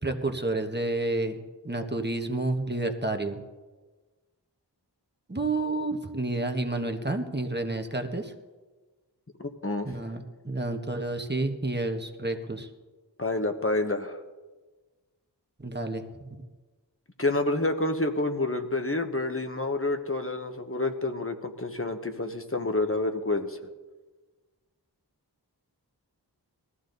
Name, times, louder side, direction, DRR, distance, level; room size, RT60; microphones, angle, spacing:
voice 1, 0.0-3.4 5.3-8.3 9.8-12.7 15.6-16.4, right 2 dB, 25° right, 5 dB, 1.3 m, -30 dB
voice 2, 9.4-9.9 13.2-14.2 17.2-23.6, left 2 dB, 35° left, 6 dB, 1.3 m, -28 dB
19.5 x 14.0 x 4.0 m, 1.3 s
wide cardioid pair, 50°, 40 cm